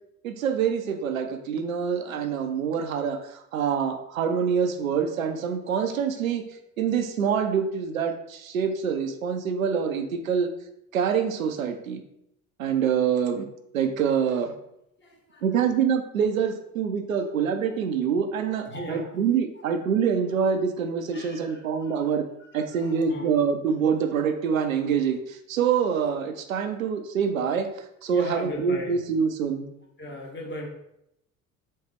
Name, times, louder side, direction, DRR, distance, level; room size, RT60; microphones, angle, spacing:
voice 1, 0.2-6.4 6.8-10.5 10.9-12.0 12.6-13.5 13.7-14.6 15.4-22.2 22.5-29.7, right 7 dB, 80° right, 7 dB, 0.5 m, -25 dB
voice 2, 15.0-15.6 17.2-17.3 18.4-19.2 20.0-20.1 21.1-23.3 28.1-29.0 30.0-30.7, left 1 dB, 25° left, 0 dB, 1.2 m, -38 dB
4.3 x 3.5 x 3.3 m, 0.79 s
figure-of-eight pair, 55°, 41 cm